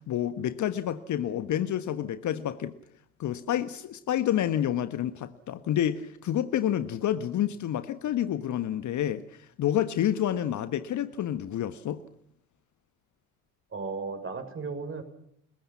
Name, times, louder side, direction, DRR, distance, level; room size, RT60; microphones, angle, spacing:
voice 1, 0.0-2.7 3.2-9.2 9.6-12.0, left 11 dB, 40° left, 12 dB, 1.5 m, -29 dB
voice 2, 13.7-15.0, right 4 dB, 30° right, 7 dB, 6.5 m, -35 dB
30.0 x 21.0 x 5.9 m, 0.71 s
figure-of-eight pair, 55°, 44 cm